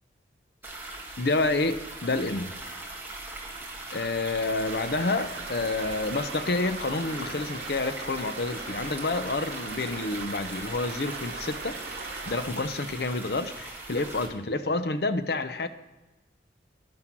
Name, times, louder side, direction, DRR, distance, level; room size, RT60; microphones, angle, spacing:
sound 1, 0.6-14.3, right 2 dB, 10° right, 1.8 m, -40 dB
voice 1, 1.2-2.5 3.9-12.0 12.2-15.7, left 3 dB, 60° left, 11 dB, 0.7 m, -29 dB
Stream, 4.7-12.4, right 4 dB, 65° right, 1.8 m, -40 dB
10.5 x 9.8 x 6.0 m, 1.1 s
head